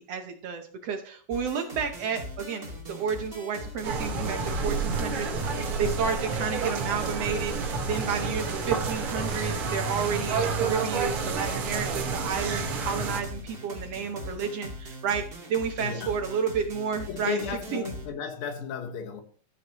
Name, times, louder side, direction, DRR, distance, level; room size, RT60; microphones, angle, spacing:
voice 1, 0.0-15.2 15.5-17.4 17.7-17.8, right 6 dB, 75° right, 1.5 m, -31 dB
sound 1, 1.3-18.1, equal, 20° right, 1.8 m, -41 dB
sound 2, 3.8-13.2, right 4 dB, 55° right, 1.9 m, -30 dB
voice 2, 15.8-16.1 17.1-19.2, left 7 dB, 85° left, 3.2 m, -34 dB
14.5 x 7.6 x 3.0 m
omnidirectional pair, 4.0 m